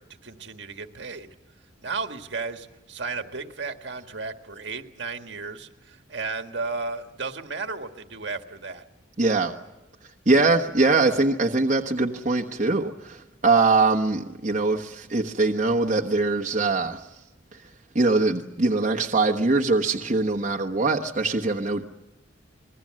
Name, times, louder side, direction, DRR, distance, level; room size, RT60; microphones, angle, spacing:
voice 1, 0.2-1.3 1.8-8.8, right 4 dB, 65° right, 6 dB, 1.7 m, -34 dB
voice 2, 9.2-9.5 10.3-17.0 17.9-21.8, right 3 dB, 40° right, 2 dB, 1.3 m, -22 dB
26.5 x 21.5 x 7.6 m, 0.95 s
head